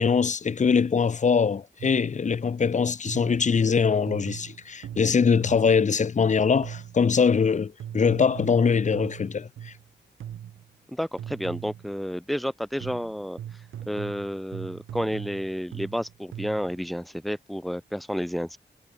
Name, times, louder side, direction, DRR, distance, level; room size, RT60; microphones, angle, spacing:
voice 1, 0.0-9.7, left 6 dB, 40° left, 0.6 m, -22 dB
sound 1, 1.8-2.2 3.1-3.5 4.1-5.9 6.6-7.1 7.8-9.9 10.2-10.7 11.2-12.0 12.8-16.8, right 10 dB, 85° right, 0.8 m, -40 dB
voice 2, 10.9-13.4 13.9-18.6, equal, ahead, 1.9 m, -31 dB
cardioid pair, 50°, 20 cm